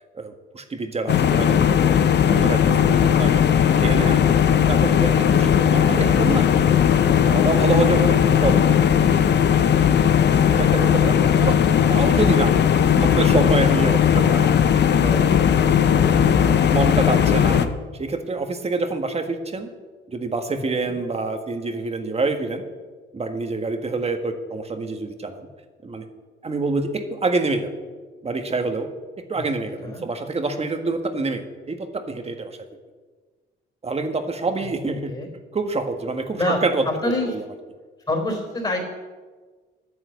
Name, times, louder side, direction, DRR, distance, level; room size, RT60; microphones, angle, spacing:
voice 1, 0.2-3.4 3.8-4.2 4.5-6.5 7.2-8.8 9.6-9.7 10.5-15.4 15.9-17.7 17.9-19.7 20.1-22.6 23.1-25.4 25.8-26.1 26.4-27.7 28.2-28.9 29.2-32.6 33.8-35.1 35.5-37.1, right 3 dB, 30° right, 6 dB, 1.6 m, -26 dB
sound 1, 1.1-17.7, left 8 dB, 60° left, 0.9 m, -17 dB
voice 2, 38.1-38.8, left 2 dB, 25° left, 1 dB, 3.6 m, -27 dB
9.8 x 9.7 x 8.0 m, 1.4 s
cardioid pair, 90°, 20 cm